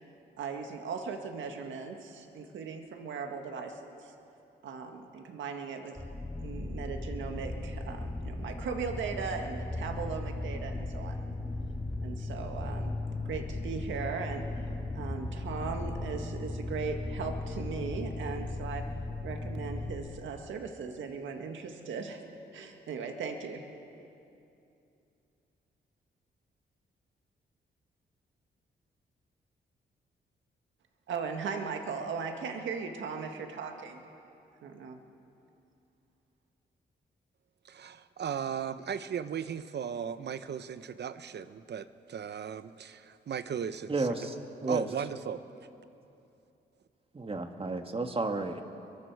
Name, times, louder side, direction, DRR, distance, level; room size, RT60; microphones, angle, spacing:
voice 1, 0.4-4.1 4.6-6.1 6.4-11.2 12.0-13.0 13.3-14.7 15.0-18.9 19.2-22.2 22.5-23.7 31.1-34.0 34.6-35.0, right 5 dB, 90° right, 4 dB, 1.7 m, -38 dB
sound 1, 6.0-19.9, left 2 dB, 5° left, 3.7 m, -37 dB
voice 2, 37.6-44.1 44.7-45.4, right 8 dB, 65° right, 12 dB, 0.9 m, -37 dB
voice 3, 43.9-44.4 44.6-44.9 47.1-48.6, right 3 dB, 30° right, 5 dB, 1.9 m, -31 dB
29.0 x 23.0 x 4.8 m, 2.7 s
cardioid pair, 80°, 19 cm